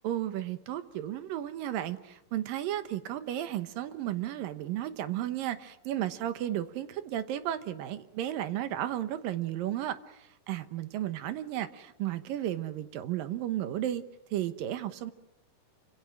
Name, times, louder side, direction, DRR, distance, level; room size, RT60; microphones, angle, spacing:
voice 1, 0.0-14.0 14.3-15.1, right 12 dB, 80° right, 11 dB, 2.8 m, -34 dB
28.0 x 25.5 x 6.2 m, 0.84 s
omnidirectional pair, 4.0 m